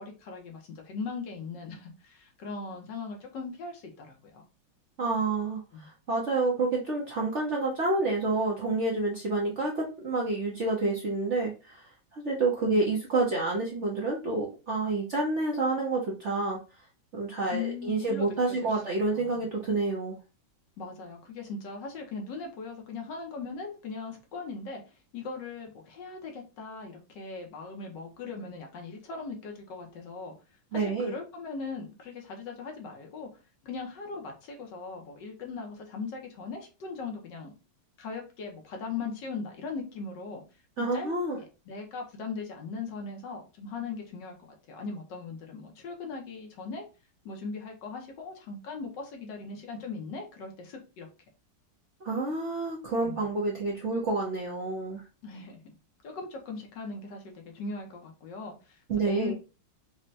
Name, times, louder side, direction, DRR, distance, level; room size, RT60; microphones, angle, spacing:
voice 1, 0.0-4.4 5.7-5.9 12.7-12.9 17.5-19.5 20.8-30.3 30.7-37.5 38.0-40.4 40.8-41.1 41.7-44.3 44.7-46.9 47.2-51.1 53.0-53.2 55.2-55.7 56.0-59.3, left 4 dB, 70° left, 2 dB, 1.5 m, -39 dB
voice 2, 5.0-16.6 17.1-20.2 30.7-31.1 40.8-41.4 52.0-55.0 58.9-59.3, right 3 dB, 60° right, -2 dB, 0.8 m, -29 dB
5.3 x 2.2 x 2.6 m, 0.31 s
omnidirectional pair, 2.1 m